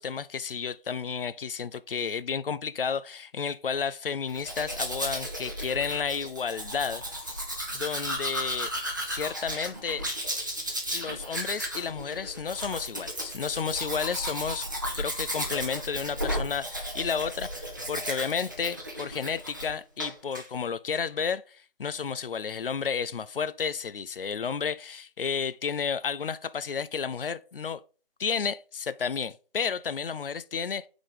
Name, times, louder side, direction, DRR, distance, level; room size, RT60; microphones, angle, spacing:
voice 1, 0.0-7.4 7.7-8.7 9.1-10.1 10.9-14.7 14.9-27.8 28.2-30.9, left 6 dB, 65° left, 0.5 m, -32 dB
Domestic sounds home sounds, 4.3-19.7 20.0-20.5, equal, 20° right, 0.7 m, -34 dB
4.9 x 4.0 x 5.0 m
figure-of-eight pair, 165°, 29 cm